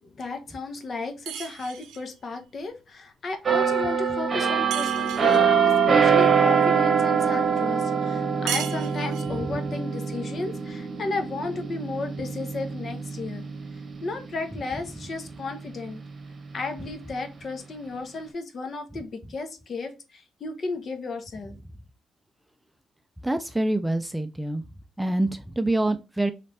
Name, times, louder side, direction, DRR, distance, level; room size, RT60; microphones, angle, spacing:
voice 1, 0.0-13.5 14.0-16.0 16.5-21.6, left 3 dB, 45° left, 0.9 m, -34 dB
sound 1, 1.3-2.1 4.7-5.5 8.5-9.4, right 9 dB, 85° right, 0.6 m, -35 dB
sound 2, 3.5-15.0 15.4-15.7, right 6 dB, 40° right, 1.1 m, -24 dB
voice 2, 23.2-24.6 25.0-26.3, right 1 dB, 5° right, 0.4 m, -26 dB
3.3 x 3.1 x 4.1 m
cardioid pair, 90°, 0 cm